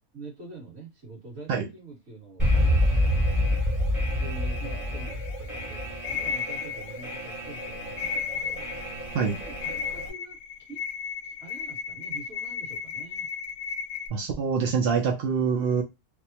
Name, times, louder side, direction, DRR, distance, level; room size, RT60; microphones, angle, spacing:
voice 1, 0.1-3.5 4.0-8.9 9.4-10.4 10.7-10.8 11.2-13.3, right 2 dB, 50° right, 1.8 m, -45 dB
Alarm, 2.4-10.1, left 1 dB, 15° right, 0.9 m, -28 dB
sound 1, 5.1-14.1, left 7 dB, 75° left, 1.0 m, -35 dB
voice 2, 14.1-15.8, right 6 dB, 70° right, 0.5 m, -25 dB
3.3 x 2.1 x 2.8 m
omnidirectional pair, 1.5 m